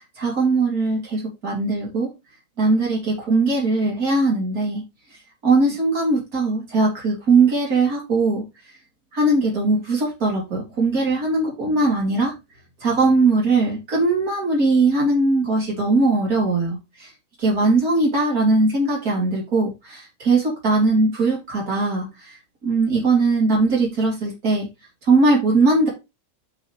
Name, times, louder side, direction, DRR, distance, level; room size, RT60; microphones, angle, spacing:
voice 1, 0.2-2.1 2.6-4.8 5.4-8.4 9.1-12.3 12.8-17.1 17.4-22.4 22.6-24.7 25.1-25.9, right 3 dB, 80° right, -4 dB, 4.1 m, -20 dB
11.5 x 4.3 x 3.4 m, 0.24 s
omnidirectional pair, 1.5 m